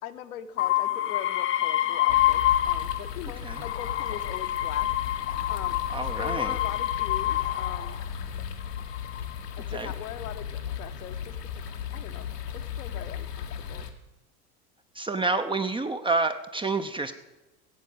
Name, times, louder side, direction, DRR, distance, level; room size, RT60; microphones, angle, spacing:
voice 1, 0.0-4.9 5.5-5.8 6.2-8.0 9.6-11.6 11.9-13.9, left 10 dB, 60° left, 8 dB, 1.2 m, -41 dB
sound 1, 0.6-3.1 3.5-8.0 8.8-9.3, left 13 dB, 25° left, 0.8 m, -27 dB
sound 2, 2.1-13.9, left 8 dB, 75° left, 1.5 m, -36 dB
voice 2, 5.9-6.6 9.7-9.9 14.9-17.1, right 3 dB, 10° right, 8 dB, 0.7 m, -28 dB
15.5 x 8.4 x 7.9 m, 1.0 s
figure-of-eight pair, 75°, 48 cm